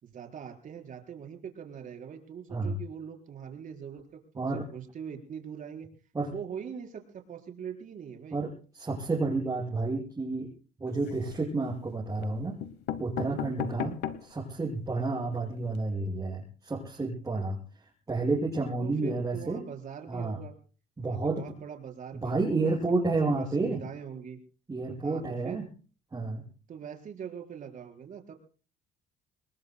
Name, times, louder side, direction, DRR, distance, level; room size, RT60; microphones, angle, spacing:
voice 1, 0.0-4.0 4.3-5.9 6.3-8.4 18.8-20.5 21.0-22.7 23.2-24.4 25.0-25.6 26.7-28.3, right 7 dB, 50° right, 3 dB, 4.5 m, -42 dB
voice 2, 8.3-10.5 10.8-12.6 13.0-19.6 20.1-20.4 21.0-21.6 22.1-23.8 24.7-25.7 26.1-26.4, right 3 dB, 20° right, -5 dB, 6.2 m, -30 dB
sound 1, 10.9-11.5 12.2-12.3 12.6-14.4 14.9-15.0 15.2-15.3 15.6-15.8, left 10 dB, 85° left, 1.1 m, -37 dB
27.0 x 20.5 x 2.2 m, 0.38 s
cardioid pair, 110°, 17 cm